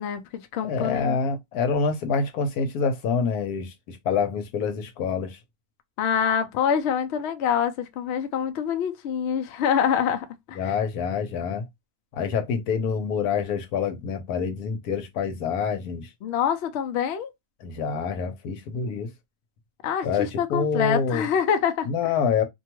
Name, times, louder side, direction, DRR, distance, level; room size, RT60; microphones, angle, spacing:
voice 1, 0.0-1.2 6.0-10.8 16.2-17.3 19.8-21.9, left 8 dB, 65° left, 0.6 m, -26 dB
voice 2, 0.6-5.4 10.6-11.6 12.1-16.1 17.6-19.1 20.0-21.2 21.8-22.4, left 5 dB, 85° left, 1.2 m, -26 dB
2.7 x 2.2 x 2.9 m
omnidirectional pair, 1.6 m